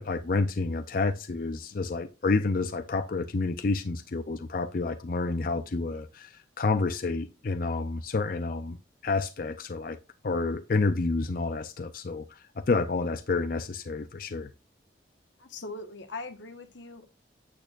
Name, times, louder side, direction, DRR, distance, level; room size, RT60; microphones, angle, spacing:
voice 1, 0.0-8.8 9.0-10.0 10.2-14.5, left 3 dB, 50° left, 0.5 m, -29 dB
voice 2, 15.4-17.1, left 3 dB, 85° left, 1.3 m, -41 dB
8.9 x 8.3 x 2.5 m
head